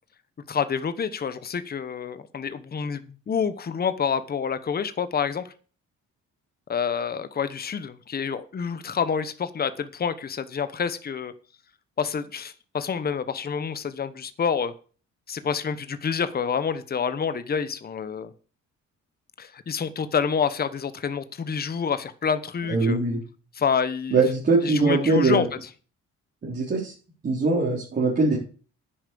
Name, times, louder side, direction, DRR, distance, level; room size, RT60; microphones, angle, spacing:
voice 1, 0.5-5.5 6.7-11.3 12.0-14.7 15.3-18.3 19.4-23.0 23.5-24.2 24.6-25.4, left 6 dB, 30° left, 13 dB, 1.0 m, -28 dB
voice 2, 22.7-23.2 24.1-25.5 26.4-26.9 27.2-28.4, right 3 dB, 35° right, -4 dB, 3.9 m, -22 dB
10.0 x 7.3 x 6.9 m, 0.38 s
cardioid pair, 125°, 30 cm